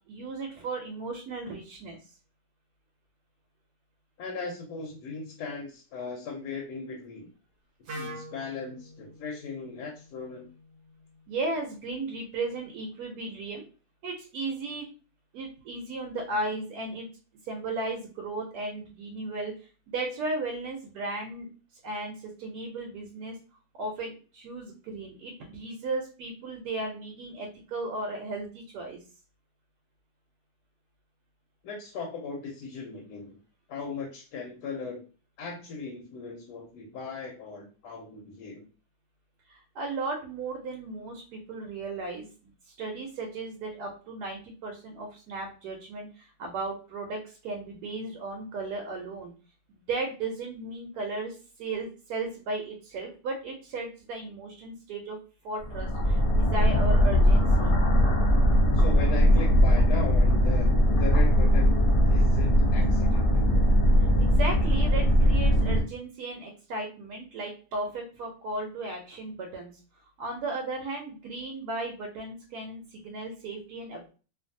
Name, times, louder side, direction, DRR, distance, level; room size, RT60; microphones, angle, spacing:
voice 1, 0.1-2.0 9.1-9.2 11.3-13.6 14.0-14.9 15.3-17.1 17.4-19.5 19.9-21.5 21.8-23.4 23.7-29.0 39.5-49.3 49.7-55.2 55.4-57.7 64.2-69.7 70.2-74.1, right 2 dB, 80° right, 1 dB, 1.1 m, -35 dB
voice 2, 4.2-7.3 7.9-10.5 31.6-33.4 33.7-35.0 35.4-38.7 58.7-61.8 62.0-63.5, left 4 dB, 85° left, 0 dB, 1.2 m, -38 dB
Wind instrument woodwind instrument, 7.9-11.7, equal, 55° right, 0.9 m, -45 dB
sound 1, 55.6-65.8, equal, 55° left, 0.9 m, -21 dB
2.6 x 2.5 x 2.6 m, 0.36 s
omnidirectional pair, 1.7 m